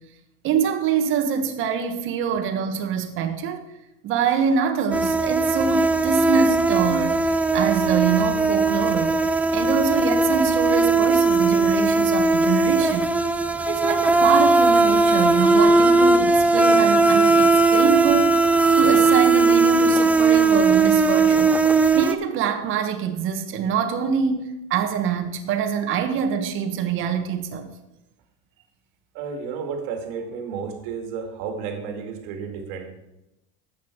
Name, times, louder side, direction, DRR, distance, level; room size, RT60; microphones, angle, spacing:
voice 1, 0.4-3.6 4.0-13.1 13.7-18.4 18.8-21.6 22.0-27.7, right 7 dB, 45° right, 1.4 m, -25 dB
sound 1, 4.9-22.1, right 3 dB, 5° right, 0.5 m, -18 dB
voice 2, 29.1-32.9, right 6 dB, 65° right, 2.2 m, -32 dB
13.0 x 8.2 x 4.6 m
supercardioid pair, 140°, 30 cm